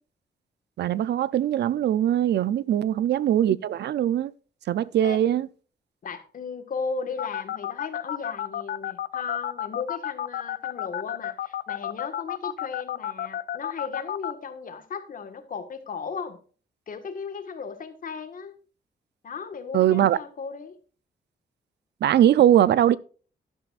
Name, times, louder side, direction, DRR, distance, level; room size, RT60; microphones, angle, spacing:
voice 1, 0.8-4.3 4.7-5.5 19.7-20.2 22.0-23.0, right 11 dB, 75° right, 0.5 m, -21 dB
voice 2, 6.0-16.4 16.9-18.6 19.2-20.8, left 5 dB, 50° left, 1.6 m, -36 dB
sound 1, 7.2-14.3, left 10 dB, 70° left, 0.6 m, -30 dB
12.5 x 11.0 x 2.5 m
wide cardioid pair, 165°, 18 cm